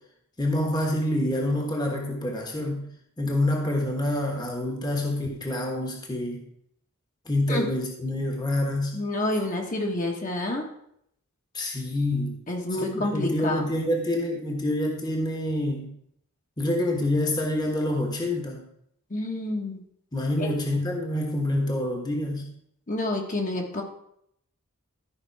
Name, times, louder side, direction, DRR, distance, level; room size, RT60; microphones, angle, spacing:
voice 1, 0.4-2.8 3.2-6.4 7.3-9.0 11.5-12.4 12.7-15.9 16.6-18.6 20.1-22.5, left 1 dB, 20° left, 1 dB, 1.2 m, -27 dB
voice 2, 8.9-10.7 12.5-13.7 19.1-19.8 20.4-20.5 22.9-23.8, left 1 dB, 40° left, 1 dB, 1.3 m, -28 dB
13.0 x 5.2 x 4.6 m, 0.72 s
head